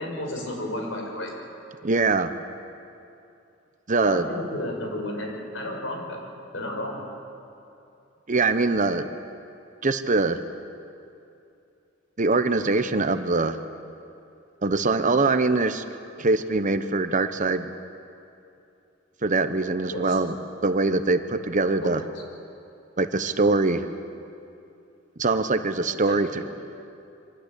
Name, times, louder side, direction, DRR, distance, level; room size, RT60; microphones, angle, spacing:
voice 1, 0.0-1.3 4.0-6.2 6.5-7.1 19.9-20.1 21.6-21.9 26.1-26.5, left 1 dB, 85° left, 1 dB, 5.6 m, -32 dB
voice 2, 1.8-2.3 3.9-4.3 8.3-9.1 9.8-10.4 12.2-13.6 14.6-15.8 16.2-17.7 19.2-20.4 20.6-22.0 23.0-23.9 25.2-26.4, right 3 dB, 40° right, 10 dB, 1.0 m, -23 dB
24.5 x 18.5 x 8.5 m, 2.7 s
head